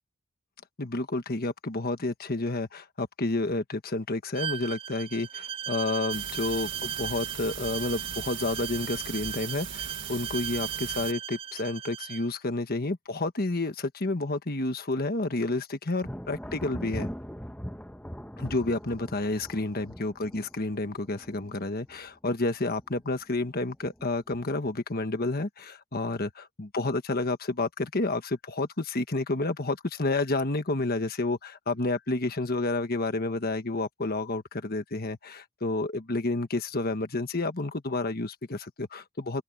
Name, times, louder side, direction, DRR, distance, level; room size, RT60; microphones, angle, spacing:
voice 1, 0.8-17.1 18.4-39.4, left 2 dB, 45° left, 1.4 m, -30 dB
Bowed string instrument, 4.3-12.3, right 9 dB, 25° right, 0.4 m, -37 dB
sound 1, 6.1-11.1, right 8 dB, 55° right, 1.8 m, -40 dB
Thunder, 16.0-22.5 22.8-23.4 23.8-24.7, equal, 5° left, 1.5 m, -41 dB
open air
head